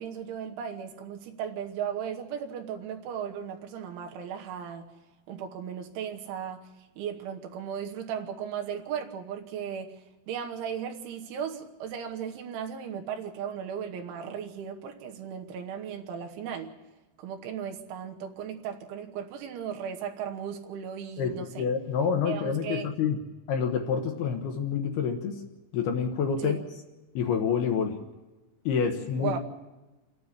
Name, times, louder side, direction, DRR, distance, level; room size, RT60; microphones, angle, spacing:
voice 1, 0.0-4.9 5.3-6.7 7.0-10.0 10.3-16.8 17.2-21.7 22.3-22.9 26.4-26.6 29.2-29.4, right 8 dB, 80° right, 3 dB, 3.6 m, -36 dB
voice 2, 21.2-23.2 23.5-25.4 25.7-26.6 27.1-28.0 28.7-29.4, left 6 dB, 70° left, 4 dB, 2.6 m, -28 dB
28.0 x 9.5 x 9.9 m, 1.1 s
omnidirectional pair, 5.5 m